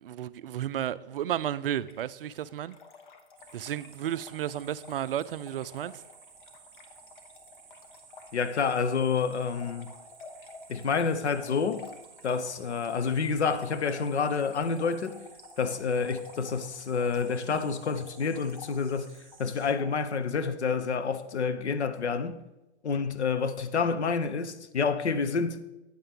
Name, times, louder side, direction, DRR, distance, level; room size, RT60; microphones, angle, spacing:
voice 1, 0.0-2.8 3.5-5.9, right 11 dB, 55° right, 0.5 m, -33 dB
Trickle dribble / Fill (with liquid), 1.8-20.3, left 4 dB, 45° left, 1.3 m, -51 dB
sound 1, 3.4-19.7, right 6 dB, 15° right, 1.8 m, -55 dB
voice 2, 8.3-9.9 10.7-11.9 12.2-15.2 15.6-19.1 19.4-22.4 22.8-25.6, left 5 dB, 75° left, 0.9 m, -28 dB
9.1 x 8.8 x 3.6 m
hypercardioid pair, 135°, 34 cm